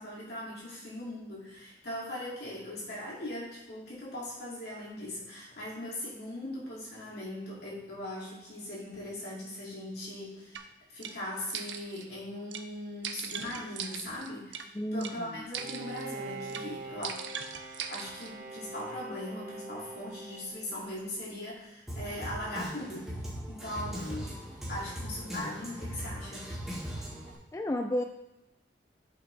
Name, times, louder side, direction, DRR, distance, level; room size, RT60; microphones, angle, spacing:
voice 1, 0.0-10.6 10.9-17.1 17.9-23.1 23.5-24.3 24.7-26.5, left 1 dB, 65° left, -6 dB, 2.8 m, -40 dB
sound 1, 10.5-10.6 11.0-11.1 11.5-12.1 12.5-12.6 13.0-14.6 15.0-15.1 15.5-16.1 16.5-16.7 17.0-18.3, right 7 dB, 85° right, 0.6 m, -40 dB
voice 2, 14.7-15.4 27.5-28.0, left 1 dB, 15° left, 4 dB, 0.3 m, -32 dB
Bowed string instrument, 15.5-21.1, right 3 dB, 50° right, 0.9 m, -43 dB
Drum kit, 21.9-27.4, equal, ahead, 1.9 m, -39 dB
8.3 x 5.7 x 3.4 m, 0.99 s
head